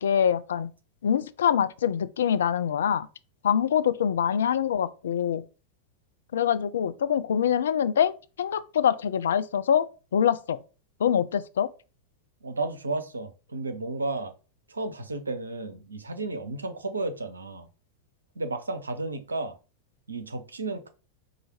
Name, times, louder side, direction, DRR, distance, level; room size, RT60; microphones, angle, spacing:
voice 1, 0.0-0.7 1.0-3.1 3.4-5.4 6.3-8.1 8.4-9.9 10.1-10.6 11.0-11.7, left 8 dB, 65° left, 0.4 m, -24 dB
voice 2, 12.4-14.3 14.7-17.7 18.4-19.6 20.1-20.9, right 2 dB, 75° right, 0.7 m, -33 dB
4.8 x 2.5 x 4.3 m
figure-of-eight pair, 90°, 0 cm